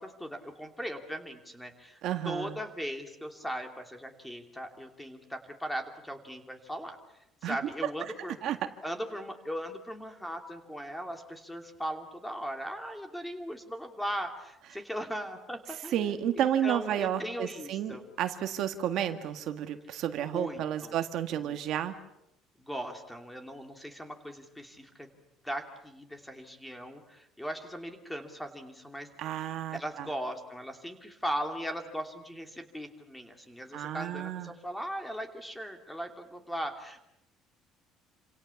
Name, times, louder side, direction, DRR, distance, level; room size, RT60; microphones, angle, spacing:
voice 1, 0.0-7.0 7.4-8.4 8.8-18.1 20.1-20.9 22.6-25.1 25.4-29.1 29.4-29.5 29.7-37.0, equal, 5° left, 5 dB, 2.9 m, -38 dB
voice 2, 2.0-2.6 7.4-7.6 8.4-8.6 15.9-21.9 29.2-30.1 33.7-34.5, right 10 dB, 50° right, 7 dB, 1.8 m, -31 dB
28.5 x 27.5 x 7.2 m, 0.84 s
cardioid pair, 175°, 0 cm